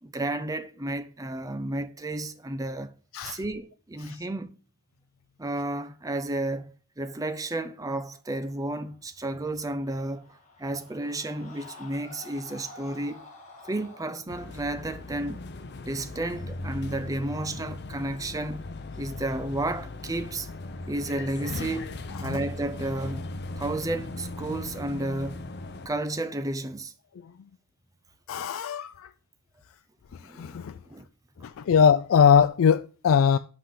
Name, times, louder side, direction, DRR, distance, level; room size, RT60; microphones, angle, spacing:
voice 1, 0.0-2.9 3.2-4.6 5.4-13.2 13.6-15.4 15.8-18.6 19.0-20.5 20.9-21.9 22.2-23.2 23.6-25.5 25.9-26.9 30.2-30.6 30.9-31.1, right 1 dB, 15° right, 0.5 m, -32 dB
Screaming, 9.6-14.1, left 3 dB, 35° left, 1.9 m, -48 dB
sound 1, 14.3-25.9, left 2 dB, 50° left, 0.7 m, -38 dB
voice 2, 28.3-29.1 30.1-30.8 31.4-33.4, left 7 dB, 75° left, 0.3 m, -22 dB
5.8 x 5.6 x 6.4 m
head